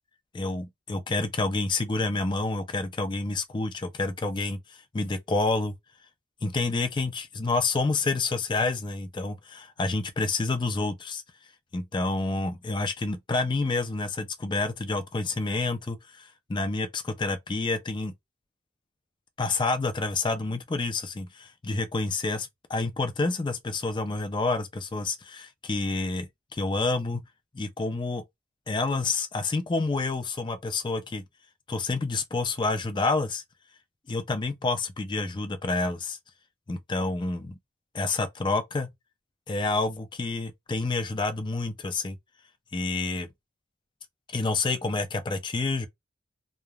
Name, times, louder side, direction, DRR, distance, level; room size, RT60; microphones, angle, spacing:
voice 1, 0.3-5.7 6.4-11.2 11.7-18.1 19.4-27.2 27.5-28.2 28.7-31.2 31.7-33.4 34.1-36.2 36.7-37.6 37.9-38.9 39.5-42.2 42.7-43.3 44.3-45.9, left 3 dB, 25° left, 0.4 m, -28 dB
3.1 x 2.2 x 2.3 m
head